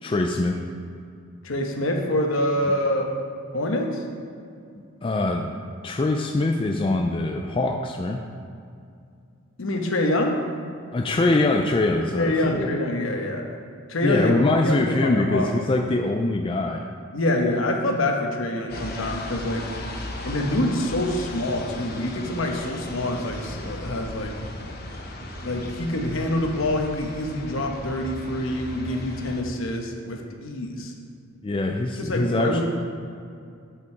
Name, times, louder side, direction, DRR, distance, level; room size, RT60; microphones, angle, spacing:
voice 1, 0.0-0.6 5.0-5.5 5.8-8.2 10.9-12.7 14.0-16.9 31.4-32.6, left 2 dB, 25° left, 2 dB, 0.3 m, -23 dB
voice 2, 1.4-3.1 3.5-4.0 9.6-10.4 12.2-13.4 13.9-14.4 14.6-15.5 17.1-19.7 20.2-24.3 25.4-30.9 32.0-32.6, left 1 dB, 70° left, 2 dB, 1.0 m, -26 dB
sound 1, 18.7-29.4, left 1 dB, 45° left, 0.8 m, -36 dB
8.4 x 5.9 x 4.6 m, 2.4 s
head